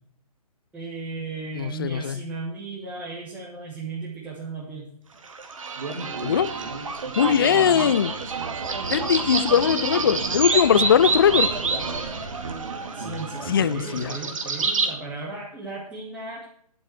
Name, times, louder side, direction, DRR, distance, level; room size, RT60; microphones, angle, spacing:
voice 1, 0.7-4.9 7.4-7.5 9.1-9.3 12.9-16.4, right 3 dB, 5° right, 2.9 m, -36 dB
voice 2, 1.6-2.2 6.2-6.6 7.2-8.2 8.9-11.5 13.5-14.2, left 8 dB, 35° left, 0.5 m, -20 dB
sound 1, 5.2-14.9, right 4 dB, 55° right, 2.4 m, -28 dB
11.5 x 8.0 x 6.3 m
figure-of-eight pair, 140°, 20 cm